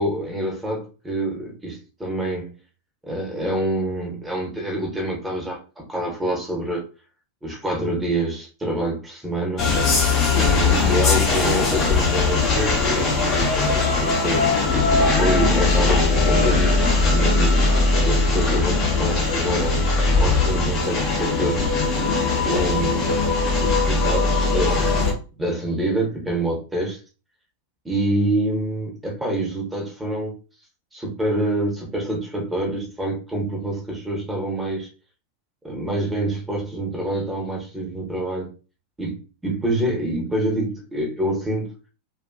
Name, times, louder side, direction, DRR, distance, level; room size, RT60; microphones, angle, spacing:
voice 1, 0.0-2.5 3.1-6.8 7.4-9.8 10.3-14.5 15.0-17.6 18.1-19.8 20.1-21.7 22.4-23.2 23.6-27.0 27.8-30.3 30.9-34.9 35.6-38.5 39.0-41.7, right 1 dB, 10° right, 0 dB, 0.9 m, -26 dB
sound 1, 9.6-25.1, left 3 dB, 30° left, 0.7 m, -20 dB
2.5 x 2.4 x 2.2 m, 0.33 s
figure-of-eight pair, 90°, 0 cm